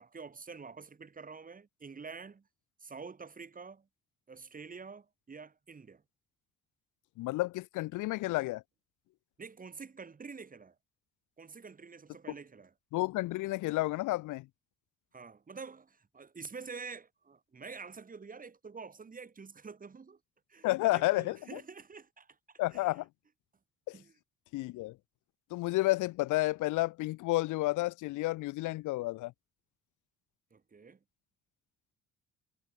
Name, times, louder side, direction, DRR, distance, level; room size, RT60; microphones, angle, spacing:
voice 1, 0.0-2.5 2.8-3.9 4.3-6.0 9.4-10.7 11.4-12.7 15.1-20.2 20.5-23.0 23.9-24.2 30.5-31.0, right 5 dB, 30° right, 1.5 m, -47 dB
voice 2, 7.2-8.6 12.9-14.5 20.6-21.6 22.6-23.1 23.9-24.0 24.5-25.0 25.5-29.3, left 19 dB, 85° left, 0.5 m, -31 dB
cardioid pair, 90°, 30 cm